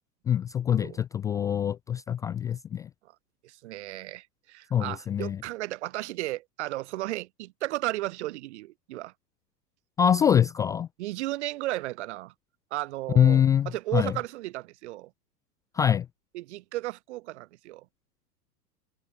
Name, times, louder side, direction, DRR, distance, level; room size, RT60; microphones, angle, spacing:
voice 1, 0.3-2.9 4.7-5.4 10.0-10.9 13.1-14.1 15.7-16.1, left 9 dB, 5° left, 0.4 m, -24 dB
voice 2, 3.4-9.1 11.0-12.3 12.7-15.1 16.3-17.8, right 17 dB, 45° right, 0.7 m, -34 dB
figure-of-eight pair, 110°, 50 cm